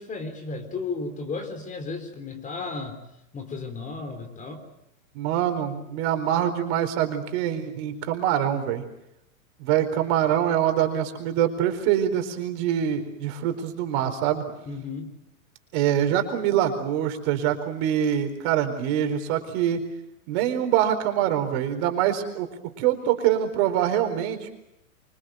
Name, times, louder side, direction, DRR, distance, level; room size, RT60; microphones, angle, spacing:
voice 1, 0.0-3.0 3.3-4.7 14.7-15.1, left 4 dB, 20° left, 8 dB, 3.7 m, -34 dB
voice 2, 5.1-8.8 9.6-14.4 15.7-19.9 20.3-22.5 22.8-24.5, right 10 dB, 45° right, 6 dB, 4.4 m, -24 dB
26.5 x 24.5 x 8.0 m, 0.83 s
hypercardioid pair, 125°, 43 cm